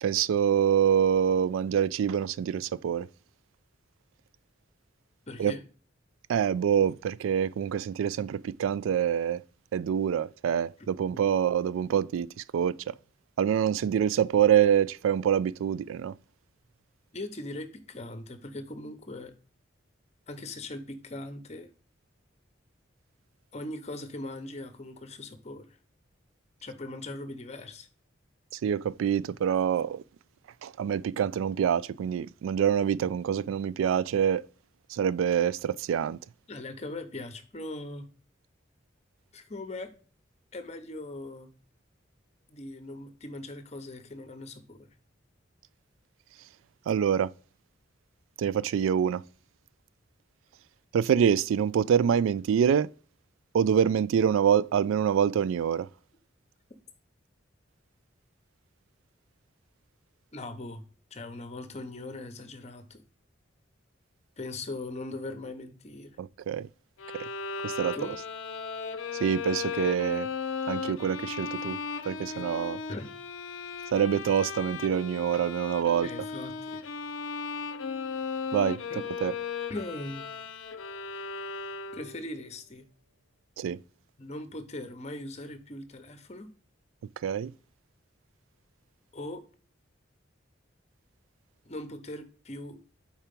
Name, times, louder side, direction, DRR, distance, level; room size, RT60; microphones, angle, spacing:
voice 1, 0.0-3.1 5.4-5.5 6.3-9.4 9.7-12.3 12.5-12.8 13.4-16.1 28.6-30.0 30.6-34.4 34.9-36.2 46.9-47.3 48.4-49.2 50.9-52.9 53.5-55.9 66.2-66.7 67.6-68.0 69.2-70.3 70.7-71.8 72.1-72.8 73.9-76.1 78.5-78.8 79.2-79.3 83.6-83.8 87.2-87.5, right 8 dB, 90° right, 0.3 m, -26 dB
voice 2, 5.3-5.6 17.1-19.3 20.3-21.7 23.5-25.7 26.6-27.9 36.5-38.1 39.3-39.9 40.5-41.5 42.5-44.8 60.3-60.8 61.1-63.0 64.4-66.1 67.9-68.1 72.3-72.4 72.9-73.1 76.0-76.8 78.9-79.0 79.7-80.3 81.1-81.3 81.9-82.8 84.2-86.5 89.1-89.4 91.7-92.8, left 2 dB, 35° left, 0.8 m, -40 dB
Bowed string instrument, 67.0-82.3, left 5 dB, 80° left, 0.5 m, -36 dB
4.6 x 4.4 x 5.1 m
head